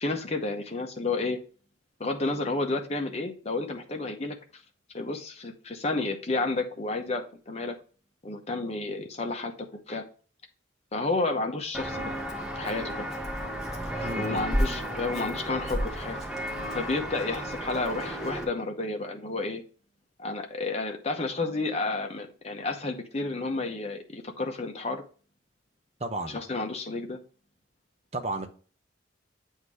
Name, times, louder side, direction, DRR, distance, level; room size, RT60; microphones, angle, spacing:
voice 1, 0.0-1.4 2.0-4.4 4.9-7.7 8.2-9.5 9.9-10.0 10.9-12.0 12.6-13.1 14.0-16.2 16.7-19.6 20.2-25.0 26.3-27.2, left 3 dB, 35° left, 4 dB, 0.9 m, -31 dB
Walk footsteps, 11.7-18.4, equal, 5° right, 1.1 m, -32 dB
voice 2, 14.0-14.5 26.0-26.4 28.1-28.5, right 2 dB, 35° right, 5 dB, 0.7 m, -33 dB
8.1 x 2.7 x 4.7 m, 0.39 s
head